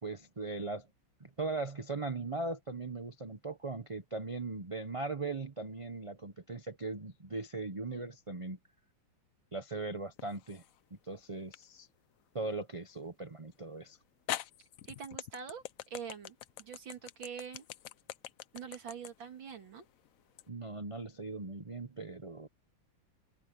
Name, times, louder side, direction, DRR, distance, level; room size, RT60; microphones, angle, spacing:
voice 1, 0.0-0.9 1.2-8.6 9.5-10.6 11.0-11.9 12.3-14.0 20.5-22.5, right 3 dB, 50° right, 0.4 m, -39 dB
sound 1, 10.2-10.8 11.5-11.6 13.5-13.6 14.3-20.5, left 12 dB, 80° left, 0.7 m, -43 dB
voice 2, 14.9-17.6 18.5-19.8, right 7 dB, 75° right, 2.7 m, -45 dB
open air
omnidirectional pair, 2.1 m